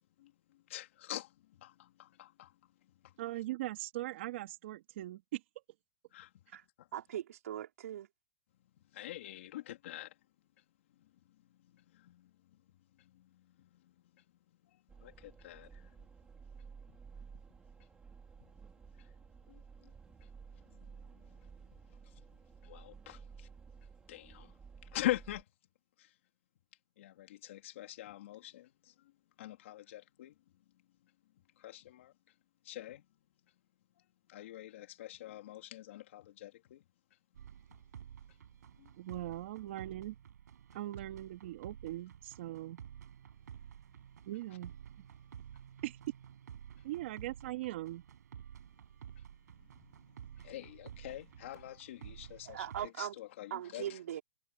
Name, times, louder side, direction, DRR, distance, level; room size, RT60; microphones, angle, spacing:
voice 1, 0.2-2.5 3.0-3.1 6.1-6.3 6.8-6.9 8.9-10.1 11.7-12.3 13.0-14.2 15.0-15.9 19.0-19.1 19.5-19.9 20.5-21.3 22.0-22.1 22.6-23.5 24.1-24.5 24.8-25.4 26.0-26.1 27.0-29.1 29.4-30.3 31.6-32.1 32.6-33.0 34.3-36.8 38.8-38.9 49.8-49.9 50.4-54.0, left 14 dB, 50° left, 3.2 m, -44 dB
voice 2, 3.2-5.4 39.0-40.2 40.7-42.8 44.3-44.7 45.8-46.0 46.8-48.0, right 15 dB, 45° right, 2.8 m, -40 dB
voice 3, 6.9-8.1 52.5-53.2 53.5-54.2, right 11 dB, 60° right, 5.2 m, -40 dB
sound 1, 14.9-25.4, right 5 dB, 10° right, 3.1 m, -54 dB
sound 2, 37.3-52.9, right 9 dB, 90° right, 7.7 m, -52 dB
supercardioid pair, 175°, 9 cm